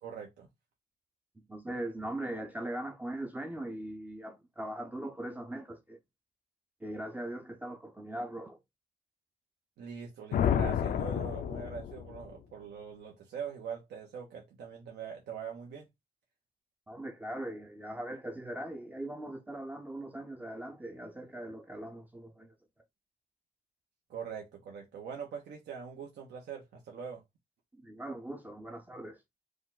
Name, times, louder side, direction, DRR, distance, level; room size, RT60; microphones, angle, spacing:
voice 1, 0.0-0.5 9.8-15.9 24.1-27.2, right 7 dB, 80° right, 1.1 m, -43 dB
voice 2, 1.5-6.0 6.8-8.6 16.9-22.5 27.7-29.2, right 1 dB, 10° right, 0.5 m, -40 dB
sound 1, 10.3-12.3, left 9 dB, 60° left, 0.5 m, -30 dB
5.1 x 2.4 x 3.9 m
wide cardioid pair, 175°, 17 cm